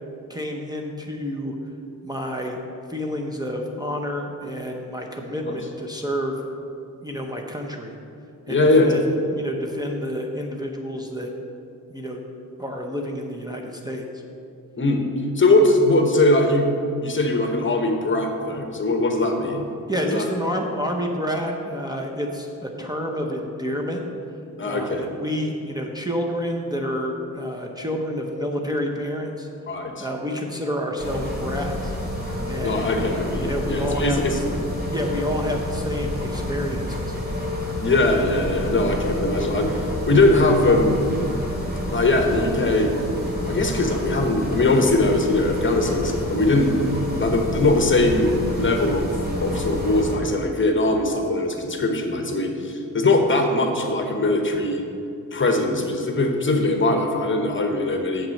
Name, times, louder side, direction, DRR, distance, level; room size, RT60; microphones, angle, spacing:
voice 1, 0.3-1.5 2.0-2.6 2.9-6.4 7.0-7.9 8.5-11.3 11.9-12.2 12.6-14.1 19.9-24.0 24.6-29.5 30.0-31.9 32.5-32.9 33.3-34.4 34.9-37.1, equal, 10° right, 1 dB, 0.7 m, -29 dB
voice 2, 8.5-9.0 14.8-15.0 15.4-16.7 17.0-19.6 20.0-20.3 24.6-25.0 29.7-30.0 32.6-34.4 37.8-39.7 40.1-41.1 41.9-42.9 43.4-46.7 47.2-49.1 49.4-54.8 55.3-58.3, left 2 dB, 35° left, 4 dB, 1.0 m, -21 dB
sound 1, 31.0-50.1, left 1 dB, 30° right, 2.2 m, -28 dB
7.2 x 5.9 x 6.5 m, 2.6 s
wide cardioid pair, 110°, 33 cm